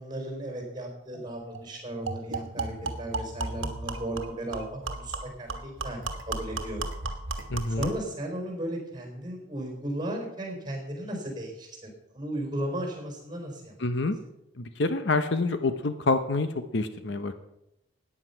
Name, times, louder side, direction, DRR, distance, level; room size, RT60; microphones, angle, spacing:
voice 1, 0.0-6.0 6.3-6.8 7.8-13.7, right 1 dB, 20° right, 2 dB, 4.2 m, -35 dB
sound 1, 1.1-1.2 1.5-1.7 2.1-8.1, right 3 dB, 70° right, 1.4 m, -35 dB
voice 2, 7.5-7.9 13.8-14.2 14.6-17.3, left 3 dB, 55° left, 10 dB, 0.8 m, -27 dB
14.0 x 9.6 x 5.7 m, 0.85 s
head